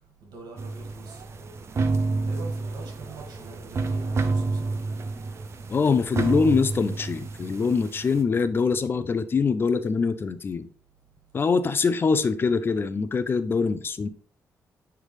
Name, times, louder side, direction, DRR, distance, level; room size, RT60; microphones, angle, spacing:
voice 1, 0.2-1.2 2.1-4.7, right 3 dB, 80° right, 2.3 m, -44 dB
sound 1, 0.6-8.2, right 3 dB, 45° right, 0.7 m, -29 dB
voice 2, 5.7-10.7 11.3-14.1, left 5 dB, 35° left, 0.6 m, -24 dB
10.0 x 3.5 x 3.4 m
cardioid pair, 120°, 7 cm